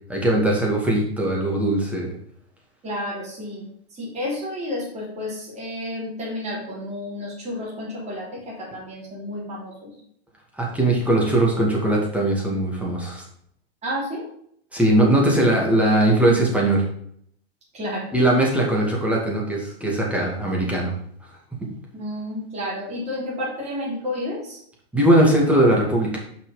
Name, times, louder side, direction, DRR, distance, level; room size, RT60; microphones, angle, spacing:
voice 1, 0.1-2.1 10.6-13.2 14.7-16.8 18.1-20.9 24.9-26.2, right 1 dB, 5° right, -3 dB, 2.2 m, -20 dB
voice 2, 2.8-3.6 3.9-9.9 13.8-14.2 17.7-18.1 21.9-24.6, left 1 dB, 20° right, -6 dB, 3.5 m, -31 dB
6.0 x 5.8 x 5.1 m, 0.66 s
supercardioid pair, 135°, 32 cm